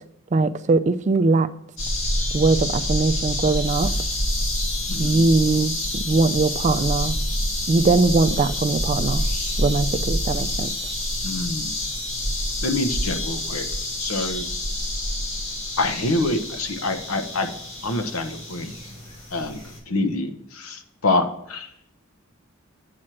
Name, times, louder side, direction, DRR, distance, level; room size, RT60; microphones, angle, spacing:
voice 1, 0.3-1.5 2.3-3.9 5.0-7.2 7.7-9.3 9.6-10.7, right 3 dB, 35° right, 0.4 m, -21 dB
sound 1, 1.8-19.8, left 1 dB, 65° left, 2.7 m, -27 dB
voice 2, 4.9-5.2 11.2-11.7 12.6-13.6 14.0-14.5 15.8-17.5 17.8-18.7 19.3-19.6 19.9-21.7, left 2 dB, 85° left, 0.9 m, -26 dB
8.5 x 4.5 x 6.2 m
head